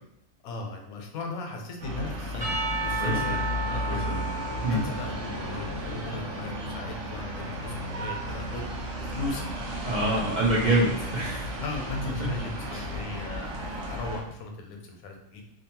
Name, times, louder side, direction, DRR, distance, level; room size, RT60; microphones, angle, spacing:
voice 1, 0.4-2.5 2.8-4.0 4.5-8.7 9.0-9.5 11.6-15.4, left 2 dB, 90° left, 2 dB, 1.0 m, -37 dB
sound 1, 1.8-14.2, equal, 75° right, 1.0 m, -34 dB
Percussion / Church bell, 2.4-6.7, right 2 dB, 35° right, 0.7 m, -34 dB
voice 2, 3.0-3.3 3.9-4.2 4.6-4.8 9.8-11.6 12.2-12.3 12.7-12.9, right 1 dB, 90° right, -6 dB, 0.4 m, -26 dB
2.7 x 2.2 x 2.8 m, 0.79 s
omnidirectional pair, 1.5 m